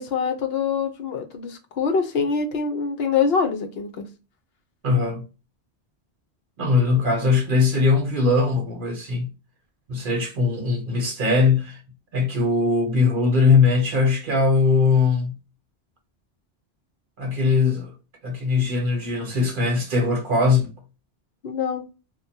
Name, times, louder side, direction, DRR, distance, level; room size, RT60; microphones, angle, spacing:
voice 1, 0.0-4.1 21.4-21.8, left 5 dB, 65° left, 0.9 m, -24 dB
voice 2, 4.8-5.2 6.6-9.3 9.9-11.8 12.1-15.4 17.2-17.9 18.2-20.7, left 4 dB, 55° right, 0.9 m, -20 dB
2.9 x 2.2 x 2.7 m
omnidirectional pair, 1.1 m